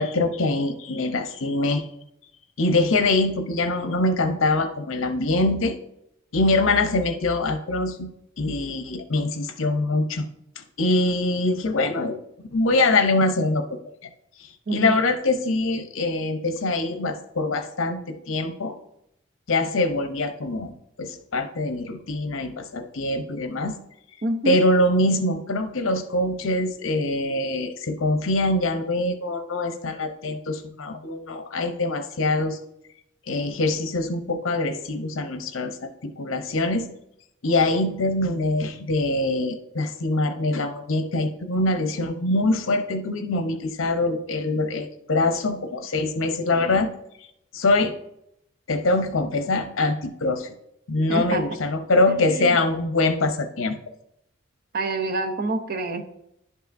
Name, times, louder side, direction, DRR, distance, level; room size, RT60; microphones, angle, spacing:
voice 1, 0.0-1.9 2.6-5.8 6.3-8.1 8.4-10.3 10.6-12.2 12.5-13.8 14.7-18.7 19.5-23.8 24.4-32.6 33.3-36.9 37.4-46.9 47.5-47.9 48.7-50.5 50.9-53.8, left 2 dB, 75° left, 8 dB, 0.7 m, -24 dB
voice 2, 14.7-15.0 24.2-24.6 51.1-51.6 52.4-52.6 54.7-56.0, right 2 dB, 50° right, 6 dB, 0.6 m, -27 dB
11.0 x 5.5 x 2.6 m, 0.80 s
head